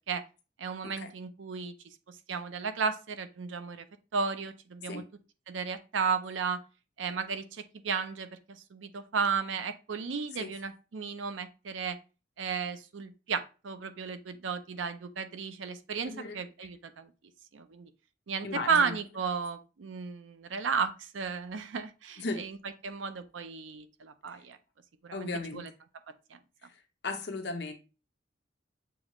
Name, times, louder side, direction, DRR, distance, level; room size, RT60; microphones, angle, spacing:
voice 1, 0.6-1.7 2.1-3.9 4.1-5.0 5.5-6.6 7.0-12.0 12.4-17.1 17.5-17.9 18.3-22.6 22.8-24.6 25.0-25.7 26.3-26.4, right 5 dB, 85° right, 10 dB, 0.5 m, -34 dB
voice 2, 16.0-16.4 18.4-19.0 22.2-22.4 25.1-25.7 27.0-27.7, left 3 dB, 60° left, 5 dB, 0.8 m, -36 dB
6.9 x 2.4 x 3.0 m, 0.32 s
head